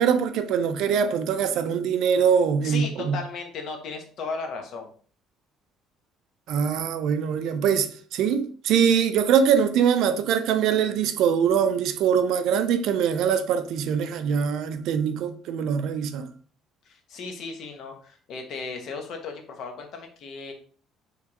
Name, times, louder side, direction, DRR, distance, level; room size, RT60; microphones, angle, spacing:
voice 1, 0.0-3.2 6.5-16.3, right 7 dB, 65° right, 0.4 m, -23 dB
voice 2, 2.6-4.9 16.8-20.5, left 4 dB, 50° left, 0.9 m, -36 dB
4.8 x 3.3 x 2.9 m
cardioid pair, 160°, 0 cm